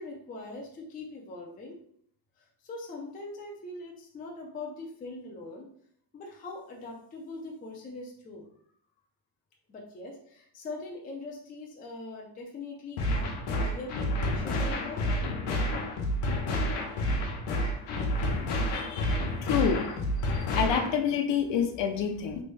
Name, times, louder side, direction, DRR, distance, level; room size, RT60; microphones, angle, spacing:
voice 1, 0.0-1.8 2.6-5.7 6.1-8.5 9.7-15.1, left 2 dB, 20° left, 0 dB, 0.3 m, -42 dB
sound 1, 13.0-21.0, left 1 dB, 90° left, 0.9 m, -29 dB
voice 2, 18.7-19.8 20.3-22.4, left 7 dB, 60° left, 5 dB, 0.6 m, -28 dB
3.2 x 2.6 x 3.2 m, 0.62 s
cardioid pair, 175°, 49 cm